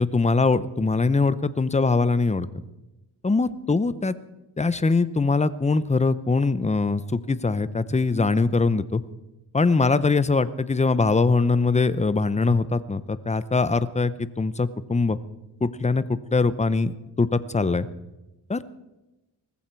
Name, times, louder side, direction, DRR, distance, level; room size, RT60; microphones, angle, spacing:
voice 1, 0.0-2.5 3.2-4.1 4.6-9.0 9.5-15.2 15.6-17.9 18.5-18.6, left 3 dB, 15° left, 15 dB, 0.7 m, -22 dB
19.5 x 14.5 x 4.6 m, 1.0 s
cardioid pair, 95°, 46 cm